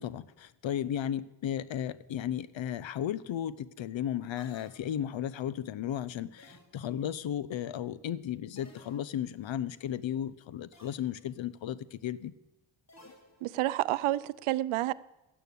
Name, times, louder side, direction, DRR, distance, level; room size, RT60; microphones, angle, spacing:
voice 1, 0.0-12.3, left 10 dB, 65° left, 0.8 m, -35 dB
sound 1, 4.4-5.3 6.4-7.1 8.6-9.4 10.7-11.3 12.9-13.8, left 1 dB, 35° left, 2.8 m, -57 dB
voice 2, 13.4-14.9, right 15 dB, 85° right, 0.6 m, -29 dB
12.5 x 9.2 x 8.4 m
cardioid pair, 60°, 48 cm